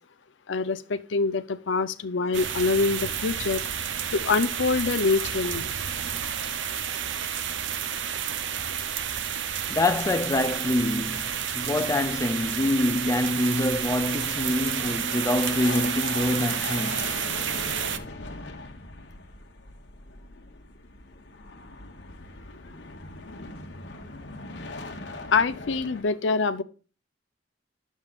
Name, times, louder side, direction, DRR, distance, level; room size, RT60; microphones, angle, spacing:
voice 1, 0.5-3.6 4.1-5.7 25.3-26.6, left 4 dB, 90° left, 0.6 m, -25 dB
sound 1, 2.3-18.0, right 8 dB, 85° right, 0.6 m, -30 dB
sound 2, 7.8-9.4 9.7-9.8 10.2-10.3 10.7-26.0, left 2 dB, 70° left, 1.1 m, -41 dB
voice 2, 9.7-17.1, left 1 dB, 15° left, 0.4 m, -26 dB
9.7 x 7.2 x 2.4 m
head